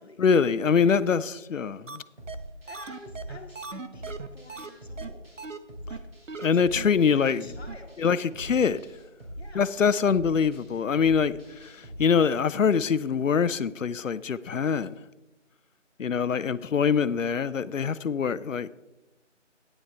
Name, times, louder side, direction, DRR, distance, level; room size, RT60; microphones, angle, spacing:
voice 1, 0.2-2.0 6.4-7.5 8.0-8.8 9.5-14.9 16.0-18.7, left 6 dB, 85° left, 0.6 m, -24 dB
sound 1, 1.9-2.0 2.3-2.4 2.7-4.7 5.0-5.1 5.4-5.6 5.9-6.0 6.3-6.5 6.8-6.9 7.2-7.3 7.7-7.8 8.0-8.1, right 4 dB, 75° right, 0.9 m, -38 dB
sound 2, 2.2-12.0, equal, 50° right, 3.1 m, -43 dB
voice 2, 2.6-5.4 5.8-6.1 6.4-8.0 9.4-9.8 16.2-16.7, left 2 dB, 55° left, 1.4 m, -50 dB
10.0 x 9.8 x 3.3 m
figure-of-eight pair, 170°, 38 cm